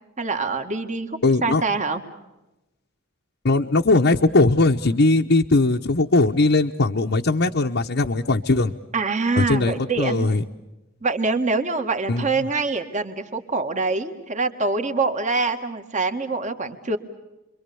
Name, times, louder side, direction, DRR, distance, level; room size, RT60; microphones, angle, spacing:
voice 1, 0.2-2.0 8.9-10.3 11.0-17.0, right 3 dB, 35° right, 7 dB, 1.9 m, -25 dB
voice 2, 1.2-1.6 3.4-8.7 9.4-10.5 12.1-12.3, left 2 dB, 55° left, 1 dB, 1.0 m, -19 dB
29.5 x 24.0 x 7.0 m, 1.0 s
head